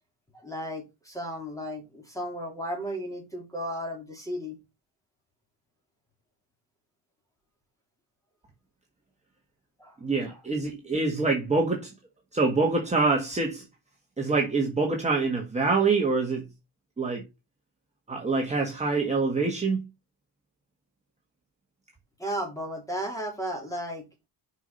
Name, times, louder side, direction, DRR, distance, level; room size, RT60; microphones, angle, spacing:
voice 1, 0.3-4.6 9.8-10.0 10.3-10.4 22.2-24.1, equal, 10° left, 3.0 m, -34 dB
voice 2, 10.0-11.9 12.3-13.6 14.2-16.5 17.0-17.2 18.1-19.9, right 3 dB, 15° right, 1.5 m, -25 dB
6.1 x 5.7 x 5.3 m
cardioid pair, 145°, 41 cm